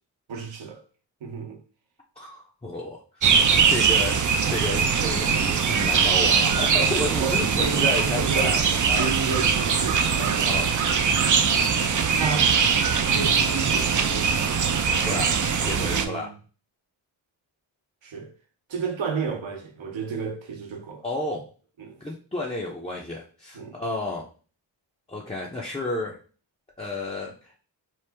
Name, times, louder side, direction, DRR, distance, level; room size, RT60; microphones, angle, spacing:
voice 1, 0.3-0.8 1.2-1.6 6.8-6.9 7.2-8.6 9.0-11.1 12.2-14.3 15.7-16.3 18.0-18.3 18.7-21.0 21.8-22.0 23.5-23.7, right 5 dB, 70° right, 0.9 m, -32 dB
voice 2, 2.2-8.6 8.9-9.1 10.5-10.7 15.0-16.3 21.0-21.5 22.0-24.3 25.1-26.2 26.8-27.6, left 2 dB, 15° left, 0.6 m, -32 dB
sound 1, 3.2-16.1, right 6 dB, 40° right, 0.5 m, -22 dB
3.1 x 2.0 x 3.3 m
cardioid pair, 45°, 48 cm